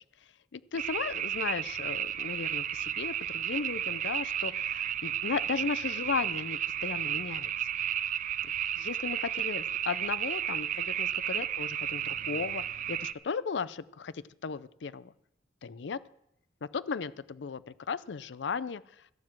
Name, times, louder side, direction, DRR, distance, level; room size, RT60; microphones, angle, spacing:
voice 1, 0.5-7.5 8.4-15.1 15.6-16.0 16.6-19.1, left 5 dB, 90° left, 18 dB, 0.5 m, -36 dB
sound 1, 0.7-13.1, right 10 dB, 45° right, 0.4 m, -33 dB
13.0 x 7.5 x 7.4 m, 0.79 s
head